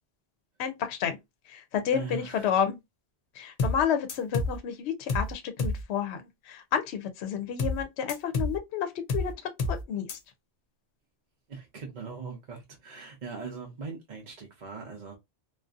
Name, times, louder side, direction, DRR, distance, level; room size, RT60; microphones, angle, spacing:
voice 1, 0.6-1.2 1.5-2.8 3.4-9.3 9.7-10.1, left 8 dB, 75° left, 0.8 m, -30 dB
voice 2, 1.9-2.5 11.5-15.2, right 5 dB, 50° right, 0.7 m, -40 dB
sound 1, 3.6-3.8 4.1-4.6 5.1-5.3 5.6-5.8 7.6-7.8 8.1-8.6 9.1-9.3 9.6-9.8 10.1-10.2, left 2 dB, 55° left, 0.4 m, -29 dB
2.5 x 2.4 x 2.3 m
omnidirectional pair, 1.2 m